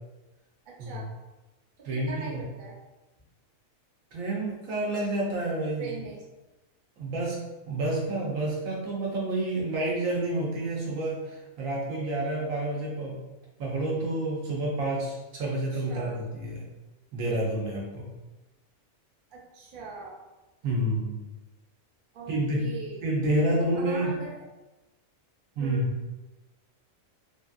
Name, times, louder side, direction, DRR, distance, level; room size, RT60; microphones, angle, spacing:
voice 1, 0.7-1.2 1.8-2.8 5.8-6.2 15.7-16.2 19.3-20.2 22.1-23.1 23.6-24.3 25.6-25.9, right 4 dB, 50° right, -4 dB, 0.7 m, -41 dB
voice 2, 1.8-2.4 4.1-5.9 7.0-7.4 7.7-13.1 13.6-16.7 17.1-18.1 20.6-21.2 22.3-22.6 23.0-24.2 25.6-25.8, right 1 dB, 75° right, -4 dB, 1.2 m, -29 dB
2.9 x 2.6 x 2.4 m, 1.1 s
omnidirectional pair, 1.4 m